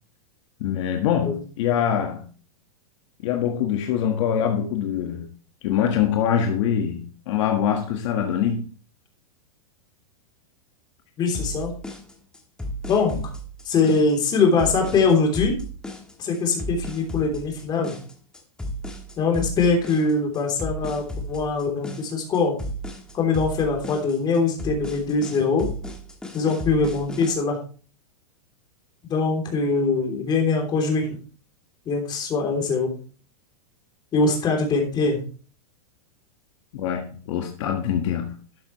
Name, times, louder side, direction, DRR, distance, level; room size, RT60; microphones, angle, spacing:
voice 1, 0.6-2.3 3.2-5.2 5.6-8.6 36.7-38.3, left 9 dB, 50° left, 1.5 m, -24 dB
voice 2, 11.2-11.7 12.9-13.2 13.6-15.6 16.2-17.9 19.2-22.6 23.1-25.7 26.3-27.6 29.0-31.2 31.8-32.9 34.1-35.2, left 4 dB, 20° left, 3.2 m, -22 dB
sound 1, 11.3-27.3, equal, 5° left, 1.4 m, -34 dB
12.5 x 8.5 x 3.1 m
supercardioid pair, 155°, 19 cm